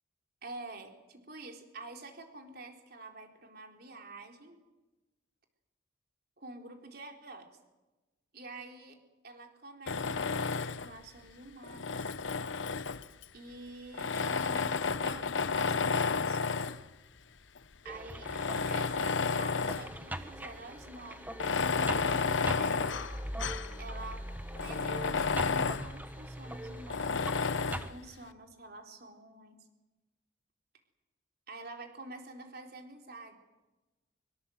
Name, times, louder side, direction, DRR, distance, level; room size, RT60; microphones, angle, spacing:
voice 1, 0.4-4.6 6.4-7.6 8.3-12.1 13.3-16.5 17.8-18.3 18.7-23.0 23.8-24.3 24.6-29.7 31.5-33.4, right 2 dB, 50° right, 3 dB, 3.8 m, -48 dB
Tools, 9.9-11.0 11.6-13.2 13.9-16.9 17.6-17.7 18.2-20.0 20.3-20.4 21.3-23.7 24.1-24.2 24.6-25.9 26.9-27.9, left 5 dB, 70° left, 0.8 m, -31 dB
sound 1, 17.8-27.9, right 1 dB, 10° right, 1.1 m, -42 dB
24.0 x 24.0 x 7.8 m, 1.1 s
head